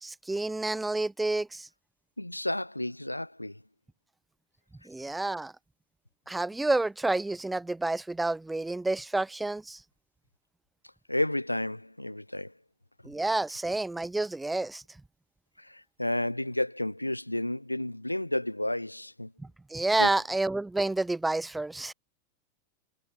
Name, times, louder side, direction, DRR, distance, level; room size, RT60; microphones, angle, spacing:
voice 1, 0.0-1.7 4.9-5.5 6.3-9.8 13.0-14.8 19.7-21.9, right 2 dB, 5° right, 2.5 m, -29 dB
voice 2, 2.2-3.6 11.1-12.5 15.6-19.3 20.0-20.1, left 1 dB, 85° left, 1.5 m, -31 dB
figure-of-eight pair, 90°, 0 cm